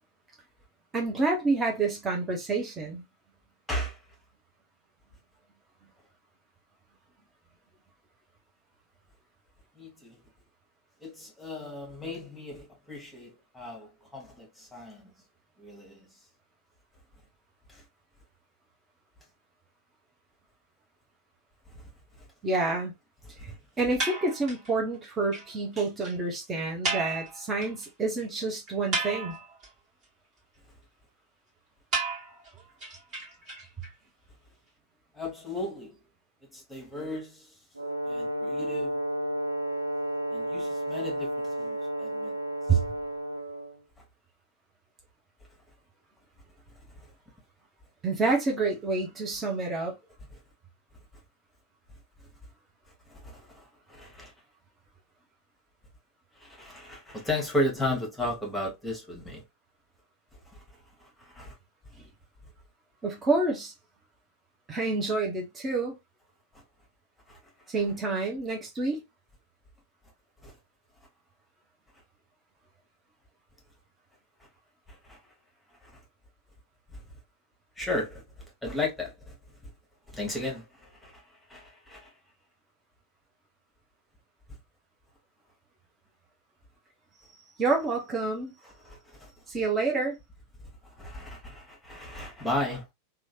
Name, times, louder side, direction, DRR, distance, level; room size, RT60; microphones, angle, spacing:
voice 1, 0.9-3.0 22.4-22.9 23.4-23.5 23.8-29.4 42.7-42.8 48.0-49.9 63.0-63.7 64.7-66.0 67.7-69.0 87.6-88.5 89.5-90.2, right 3 dB, 20° right, 0.9 m, -28 dB
voice 2, 3.7-4.0 9.8-10.1 11.0-15.1 15.6-16.0 17.7-17.8 21.7-21.9 23.5-23.6 35.1-36.0 36.5-37.5 38.0-39.0 40.3-42.4 42.7-42.8 53.1-54.3 56.4-59.4 60.5-60.6 61.0-61.6 66.5-66.6 67.3-67.4 70.4-70.5 74.9-75.2 75.8-76.0 76.9-77.0 77.8-78.2 78.6-79.3 80.1-81.2 81.5-82.1 88.6-89.3 90.8-92.9, left 1 dB, 5° left, 1.3 m, -35 dB
sound 1, 24.0-24.7 25.0-25.1 25.3-25.4 25.7-25.8 26.0-26.1 26.8-27.8 28.2-28.3 28.7-29.7 31.9-33.9, right 3 dB, 35° right, 1.8 m, -33 dB
Brass instrument, 37.8-43.8, right 1 dB, 80° right, 0.4 m, -32 dB
3.0 x 2.4 x 2.7 m
figure-of-eight pair, 90°, 0 cm